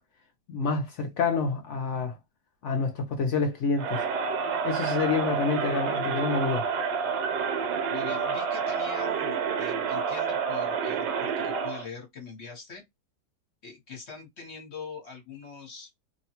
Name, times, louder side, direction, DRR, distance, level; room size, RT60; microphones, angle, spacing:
voice 1, 0.5-2.2 2.6-4.0 4.6-6.7, left 4 dB, 70° left, 0.7 m, -28 dB
Crowd, 3.8-11.9, right 6 dB, 75° right, 1.2 m, -29 dB
voice 2, 7.9-12.8 13.6-16.1, left 5 dB, 45° left, 1.1 m, -42 dB
2.8 x 2.2 x 2.8 m
omnidirectional pair, 1.9 m